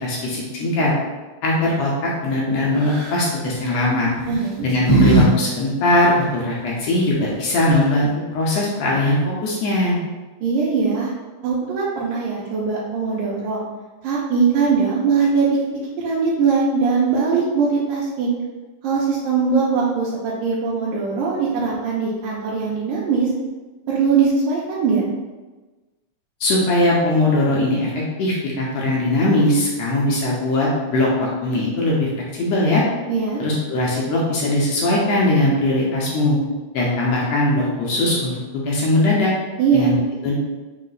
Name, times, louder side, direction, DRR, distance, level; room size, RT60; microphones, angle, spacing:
voice 1, 0.0-0.9 1.4-4.1 4.6-10.0 26.4-27.9 28.2-32.8 33.4-36.4 36.7-39.3 39.7-40.0 40.2-40.3, left 1 dB, 75° left, -4 dB, 1.6 m, -20 dB
sound 1, 2.8-3.2 4.2-5.3 5.5-5.6 7.3-7.4 7.6-8.0, right 1 dB, 50° right, 1.1 m, -18 dB
voice 2, 4.3-4.7 10.4-11.1 11.4-13.6 14.0-15.6 16.0-18.3 18.8-23.3 23.9-25.0 33.1-33.4 39.6-39.9, right 5 dB, 85° right, -7 dB, 2.1 m, -20 dB
5.3 x 2.1 x 3.9 m, 1.2 s
omnidirectional pair, 3.6 m